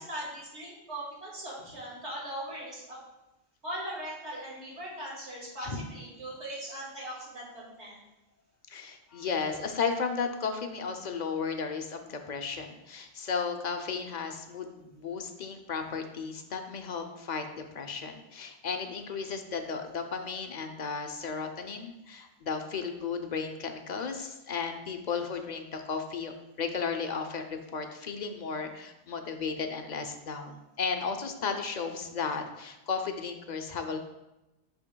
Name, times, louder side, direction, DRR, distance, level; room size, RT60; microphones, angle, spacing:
voice 1, 0.0-3.0 3.6-8.0, right 1 dB, 75° right, -5 dB, 2.4 m, -40 dB
voice 2, 8.7-34.0, left 5 dB, 50° left, 6 dB, 0.6 m, -34 dB
8.7 x 5.7 x 2.2 m, 0.98 s
omnidirectional pair, 1.2 m